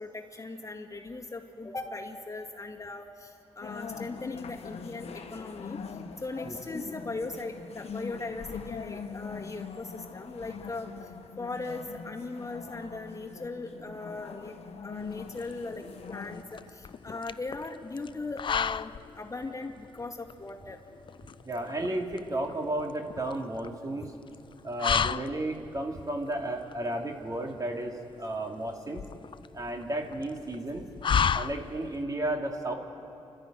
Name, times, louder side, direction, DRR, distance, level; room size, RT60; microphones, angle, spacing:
voice 1, 0.0-5.8 6.2-10.9 11.4-14.5 14.8-20.8 21.6-21.7, left 3 dB, 30° left, 1 dB, 2.0 m, -39 dB
sound 1, 3.6-16.4, left 6 dB, 70° left, 1.1 m, -43 dB
sound 2, 15.0-32.0, left 7 dB, 50° left, 0.4 m, -34 dB
voice 2, 21.4-24.1 24.6-29.0 29.5-30.8 31.3-32.7, right 1 dB, 35° right, 2 dB, 2.6 m, -33 dB
28.5 x 13.0 x 9.1 m, 2.7 s
cardioid pair, 60°, 11 cm